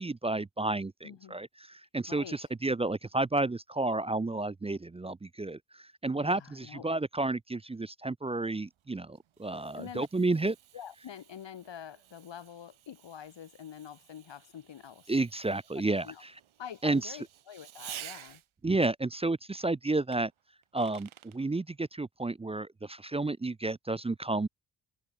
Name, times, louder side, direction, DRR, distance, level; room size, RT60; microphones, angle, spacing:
voice 1, 0.0-5.6 6.0-10.5 15.1-16.1 16.8-17.1 18.6-20.3 20.7-24.5, right 2 dB, 15° right, 0.4 m, -31 dB
voice 2, 1.0-1.4 2.1-2.5 6.1-6.8 9.7-15.1 15.7-16.2 16.6-18.4, left 9 dB, 65° left, 2.9 m, -46 dB
Fireworks, 8.8-18.7 20.1-21.4, right 11 dB, 75° right, 5.0 m, -51 dB
supercardioid pair, 60°, 48 cm